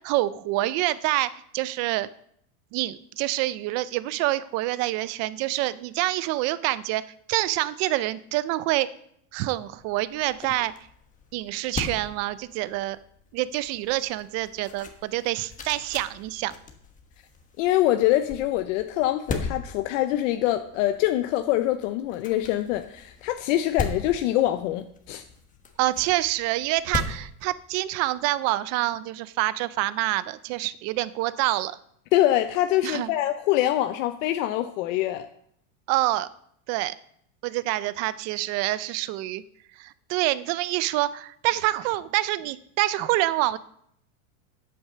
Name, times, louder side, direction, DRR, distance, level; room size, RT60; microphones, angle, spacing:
voice 1, 0.0-2.1 2.7-7.0 7.3-8.9 9.3-10.7 11.3-13.0 13.3-16.5 25.8-31.8 32.8-33.1 35.9-36.3 36.7-36.9 37.4-39.4 39.8-43.6, right 16 dB, 40° right, 17 dB, 0.5 m, -26 dB
sound 1, 9.5-28.2, left 4 dB, 20° left, 1.3 m, -39 dB
voice 2, 17.6-25.2 32.1-35.3, left 14 dB, 60° left, 8 dB, 0.8 m, -24 dB
8.7 x 8.3 x 6.7 m, 0.69 s
supercardioid pair, 145°, 43 cm